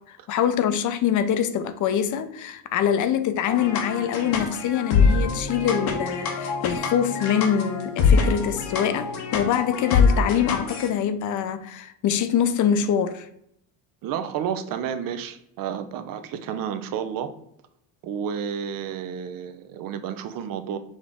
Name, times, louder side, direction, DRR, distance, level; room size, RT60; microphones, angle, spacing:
voice 1, 0.0-13.3, left 9 dB, 50° left, 0.5 m, -24 dB
sound 1, 3.5-10.9, left 5 dB, 75° left, 0.9 m, -24 dB
voice 2, 14.0-17.3 18.0-20.8, right 8 dB, 60° right, 0.6 m, -31 dB
5.0 x 2.6 x 3.5 m
supercardioid pair, 80°, 39 cm